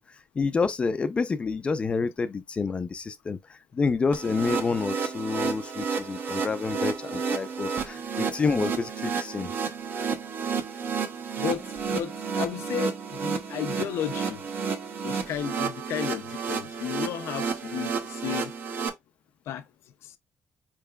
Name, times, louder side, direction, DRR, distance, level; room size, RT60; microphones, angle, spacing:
voice 1, 0.0-9.5, left 4 dB, 25° left, 0.3 m, -28 dB
sound 1, 4.1-18.9, right 5 dB, 50° right, 0.7 m, -31 dB
voice 2, 11.9-14.4 15.0-18.5 19.5-19.6 20.0-20.2, left 10 dB, 85° left, 0.5 m, -33 dB
4.6 x 3.3 x 2.3 m
cardioid pair, 160°, 4 cm